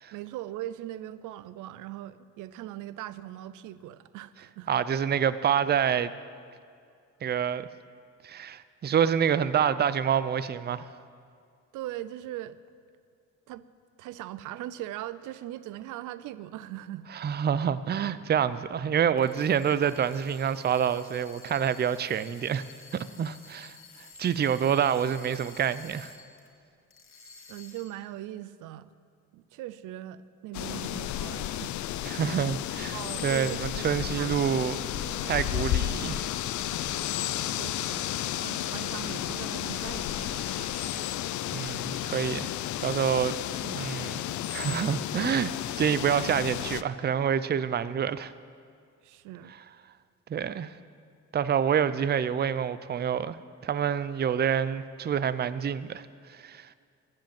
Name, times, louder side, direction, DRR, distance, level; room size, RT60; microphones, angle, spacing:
voice 1, 0.1-4.7 11.7-12.6 13.5-13.6 14.0-17.1 27.5-28.9 29.3-31.7 32.9-34.3 37.4-40.7 49.0-49.5, right 13 dB, 90° right, 15 dB, 0.5 m, -40 dB
voice 2, 4.7-6.1 7.2-7.7 8.2-10.9 17.1-22.6 22.9-23.8 24.2-26.1 32.0-34.8 35.2-36.3 40.9-41.0 41.5-42.5 42.8-43.3 43.6-44.2 44.5-45.5 45.8-48.3 50.3-50.7 51.3-53.4 53.6-56.7, right 8 dB, 35° right, 15 dB, 0.5 m, -27 dB
sound 1, 19.1-26.5 26.9-28.1, left 4 dB, 45° left, 2.0 m, -51 dB
sound 2, 30.5-46.8, left 13 dB, 75° left, 0.5 m, -32 dB
sound 3, 34.7-41.2, right 6 dB, 70° right, 1.1 m, -48 dB
14.5 x 7.8 x 7.6 m, 2.3 s
cardioid pair, 90°, 30 cm